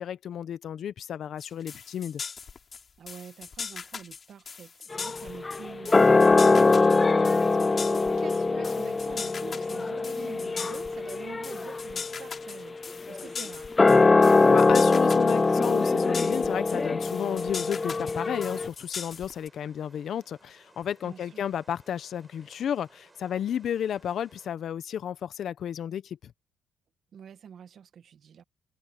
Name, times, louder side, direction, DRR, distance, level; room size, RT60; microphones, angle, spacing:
voice 1, 0.0-2.2 14.4-26.3, left 9 dB, 65° left, 1.0 m, -32 dB
sound 1, 1.4-19.5, left 5 dB, 45° left, 5.2 m, -40 dB
voice 2, 3.0-13.7 21.0-21.4 27.1-28.4, right 8 dB, 60° right, 1.8 m, -47 dB
sound 2, 4.9-18.7, left 3 dB, 25° left, 0.5 m, -23 dB
sound 3, 17.2-24.5, right 2 dB, 20° right, 6.6 m, -60 dB
cardioid pair, 90°, 0 cm